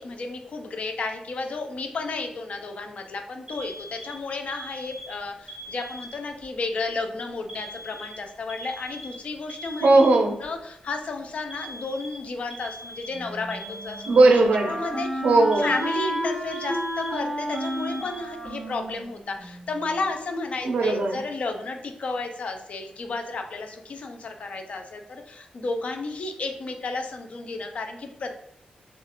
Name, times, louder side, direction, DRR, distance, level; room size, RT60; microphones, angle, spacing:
voice 1, 0.0-9.9 10.4-14.0 14.7-15.3 15.6-28.5, left 3 dB, 55° left, 5 dB, 0.4 m, -32 dB
Alarm, 3.5-6.4 7.5-10.5 11.5-14.5 15.5-18.5, equal, 20° right, 0.6 m, -41 dB
voice 2, 9.8-10.4 14.1-14.8 15.2-15.7 20.6-21.2, right 2 dB, 65° right, 4 dB, 0.4 m, -18 dB
Wind instrument woodwind instrument, 13.1-20.0, right 1 dB, ahead, 1.0 m, -32 dB
2.4 x 2.3 x 2.8 m, 0.77 s
wide cardioid pair, 155°, 3 cm